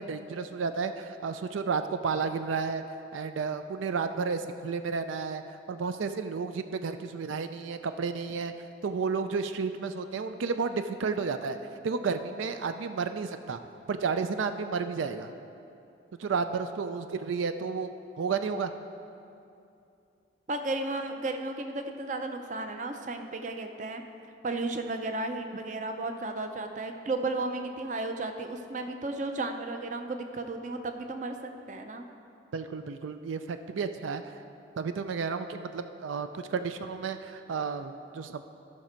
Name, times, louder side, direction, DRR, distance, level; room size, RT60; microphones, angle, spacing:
voice 1, 0.0-2.8 3.1-5.4 5.7-8.5 8.8-11.6 11.8-13.6 13.9-15.3 16.2-18.7 32.5-34.2 34.8-38.4, right 5 dB, 90° right, 9 dB, 0.4 m, -32 dB
voice 2, 20.5-24.0 24.4-32.1, right 2 dB, 40° right, 6 dB, 0.5 m, -34 dB
14.0 x 6.0 x 4.4 m, 2.6 s
head